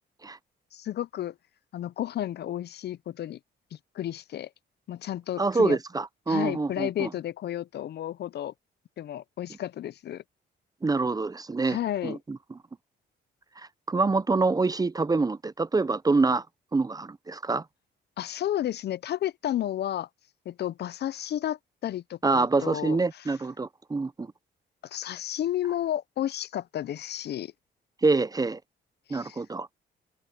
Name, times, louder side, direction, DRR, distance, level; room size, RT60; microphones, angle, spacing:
voice 1, 0.7-1.3 1.7-3.4 3.7-4.5 4.9-5.8 6.3-8.5 9.0-10.2 11.6-12.2 18.2-20.1 20.5-23.0 24.8-27.5 29.1-29.4, left 12 dB, 55° left, 0.5 m, -32 dB
voice 2, 5.4-7.1 10.8-11.8 12.0-12.4 13.6-16.4 16.7-17.6 22.2-24.3 28.0-28.6 29.1-29.7, right 3 dB, 20° right, 0.6 m, -26 dB
cardioid pair, 90°, 20 cm